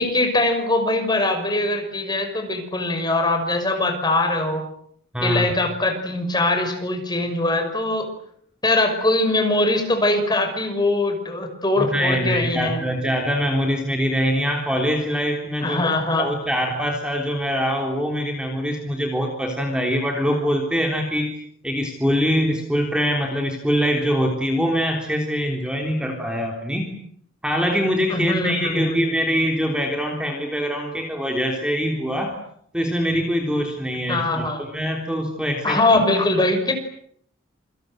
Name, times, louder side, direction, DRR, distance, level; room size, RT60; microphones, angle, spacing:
voice 1, 0.0-4.6 5.2-8.1 8.6-12.8 15.6-16.3 28.1-29.1 34.1-34.6 35.6-36.7, left 2 dB, 20° left, 6 dB, 5.9 m, -22 dB
voice 2, 5.1-5.5 11.8-15.9 16.2-21.3 21.6-27.0 27.4-32.4 32.7-35.8, equal, 5° right, 2 dB, 3.6 m, -23 dB
28.0 x 26.0 x 7.9 m, 0.67 s
head